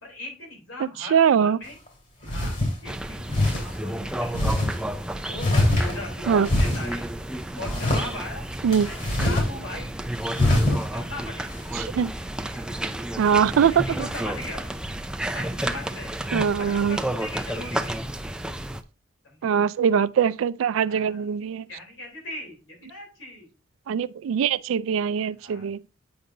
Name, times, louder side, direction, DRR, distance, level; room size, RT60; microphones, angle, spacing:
voice 1, 0.0-1.8 2.3-4.6 5.3-7.1 7.6-8.5 8.8-9.9 10.4-11.5 12.5-12.8 13.3-14.6 15.3-16.1 16.6-18.0 19.2-19.6 20.8-21.3 21.7-23.5 25.4-25.7, left 2 dB, 85° left, 3.5 m, -39 dB
voice 2, 1.1-1.6 6.3-6.5 8.6-8.9 11.8-12.1 13.2-14.1 16.3-17.0 19.4-21.6 23.9-25.8, right 7 dB, 85° right, 0.3 m, -22 dB
sound 1, 1.7-1.8 2.2-2.7 3.3-3.6 4.3-4.7 5.4-6.1 6.4-6.9 7.6-8.1 8.7-9.5 9.8-9.9 10.3-10.8, left 1 dB, 45° left, 2.7 m, -22 dB
sound 2, 2.9-18.8, right 1 dB, 5° right, 0.3 m, -32 dB
8.7 x 5.2 x 2.7 m
head